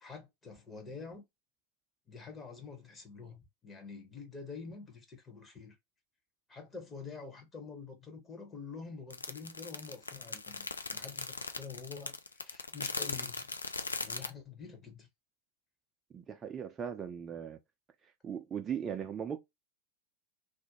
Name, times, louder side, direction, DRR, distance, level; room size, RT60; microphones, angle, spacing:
voice 1, 0.0-1.2 2.1-5.8 6.5-13.5 14.0-15.1, left 5 dB, 20° left, 0.7 m, -47 dB
sound 1, 9.1-14.3, left 3 dB, 75° left, 0.3 m, -39 dB
voice 2, 16.1-17.6 18.2-19.4, right 8 dB, 20° right, 0.3 m, -38 dB
2.4 x 2.1 x 2.7 m
figure-of-eight pair, 90°, 0 cm